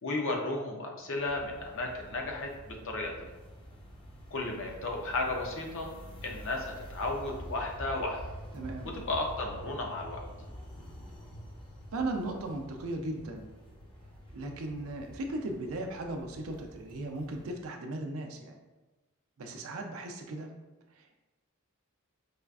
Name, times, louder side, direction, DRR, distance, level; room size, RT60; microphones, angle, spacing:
voice 1, 0.0-3.3 4.3-5.9 6.2-8.2 8.8-10.2, left 2 dB, 65° left, 1 dB, 0.6 m, -34 dB
sound 1, 1.2-17.5, equal, 25° left, 0.6 m, -47 dB
voice 2, 8.5-8.9 11.9-13.5 14.3-18.6 19.4-20.5 21.0-21.2, right 2 dB, 70° right, 3 dB, 0.5 m, -37 dB
4.9 x 2.4 x 2.3 m, 1.1 s
head